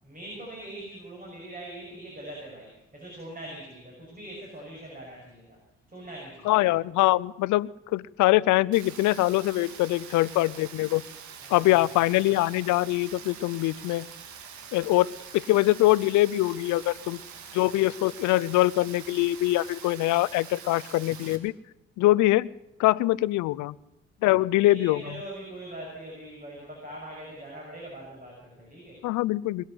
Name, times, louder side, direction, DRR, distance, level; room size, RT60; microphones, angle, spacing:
voice 1, 0.0-5.6 5.9-6.8 11.4-12.1 24.6-29.0, right 1 dB, 25° right, -3 dB, 6.5 m, -42 dB
voice 2, 6.4-11.0 11.5-14.1 14.7-15.1 15.3-17.2 17.5-21.5 22.0-22.5 22.8-23.7 24.2-25.0 29.0-29.6, left 17 dB, 70° left, 22 dB, 0.5 m, -23 dB
Rain, 8.7-21.4, right 7 dB, 65° right, 2.0 m, -45 dB
21.5 x 8.0 x 7.9 m, 0.89 s
hypercardioid pair, 50°, 31 cm